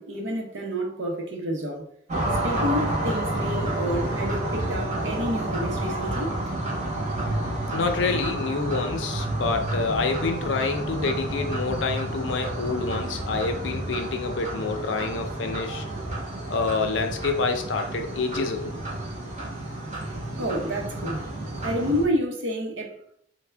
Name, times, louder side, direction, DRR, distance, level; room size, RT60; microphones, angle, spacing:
voice 1, 0.0-1.8 2.4-6.4 19.9-21.3 21.6-23.0, equal, 90° right, 0.8 m, -29 dB
sound 1, 2.1-22.0, right 1 dB, 40° right, 1.0 m, -30 dB
voice 2, 7.7-15.9 16.5-18.7, left 4 dB, 70° left, 0.5 m, -27 dB
3.4 x 2.1 x 3.3 m
head